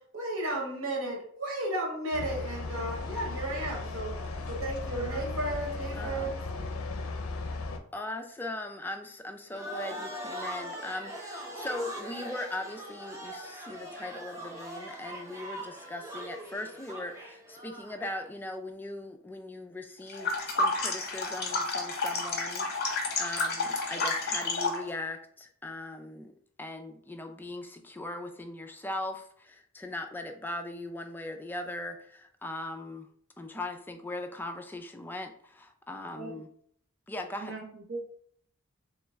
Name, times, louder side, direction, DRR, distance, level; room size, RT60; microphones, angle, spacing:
voice 1, 0.1-4.1 4.5-6.4, right 1 dB, 85° right, -1 dB, 1.4 m, -33 dB
sound 1, 2.1-7.8, left 3 dB, 75° left, 0.5 m, -36 dB
voice 2, 5.9-6.4 7.9-22.7 23.2-26.3 26.6-33.1 33.4-36.5 37.1-37.5, left 2 dB, 10° left, 4 dB, 0.3 m, -39 dB
sound 2, 9.5-18.3, right 1 dB, 15° right, 0.7 m, -41 dB
sound 3, 20.1-24.9, left 3 dB, 50° left, 0.8 m, -30 dB
voice 3, 37.4-38.0, right 3 dB, 65° right, 0 dB, 0.6 m, -39 dB
3.1 x 3.1 x 3.4 m, 0.62 s
head